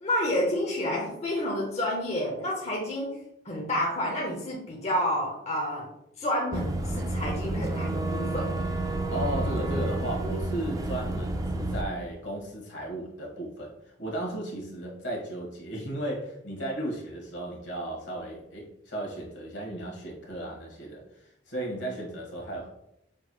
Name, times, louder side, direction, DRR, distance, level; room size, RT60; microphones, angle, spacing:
voice 1, 0.0-5.9 6.2-8.6, left 1 dB, 35° left, -1 dB, 0.7 m, -29 dB
Boat Water vehicle / Engine, 6.5-11.8, right 2 dB, 20° right, 0.3 m, -30 dB
sound 1, 8.9-11.8, left 3 dB, 15° left, 1.3 m, -40 dB
voice 2, 9.1-22.7, right 1 dB, 70° left, -2 dB, 1.5 m, -35 dB
6.1 x 3.0 x 2.2 m, 0.80 s
head